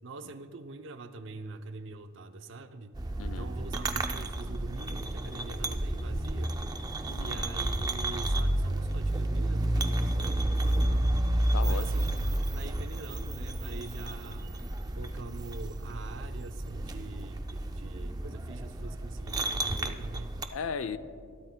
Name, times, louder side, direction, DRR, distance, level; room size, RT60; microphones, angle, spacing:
voice 1, 0.0-3.0 3.2-6.6 7.2-11.1 11.6-14.5 15.0-20.4, right 3 dB, 65° right, 9 dB, 0.6 m, -44 dB
sound 1, 2.9-20.4, right 1 dB, 20° right, 0.4 m, -31 dB
voice 2, 3.2-3.5 7.1-7.4 11.5-11.9 20.5-21.0, left 5 dB, 80° left, 12 dB, 0.5 m, -36 dB
20.5 x 13.0 x 2.2 m, 2.3 s
head